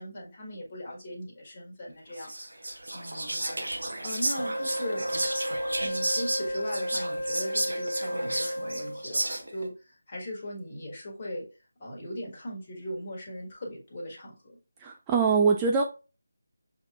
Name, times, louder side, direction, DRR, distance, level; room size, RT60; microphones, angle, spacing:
voice 1, 0.0-2.3 2.9-5.1 5.8-11.5 11.8-14.6, equal, 30° left, -1 dB, 1.5 m, -39 dB
Whispering, 2.2-9.6, right 1 dB, 70° right, 1.0 m, -33 dB
Wind instrument woodwind instrument, 4.4-9.1, equal, 65° left, 0.7 m, -33 dB
voice 2, 14.8-15.8, right 5 dB, 15° right, 0 dB, 0.3 m, -23 dB
6.5 x 2.9 x 2.4 m, 0.31 s
figure-of-eight pair, 160°, 0 cm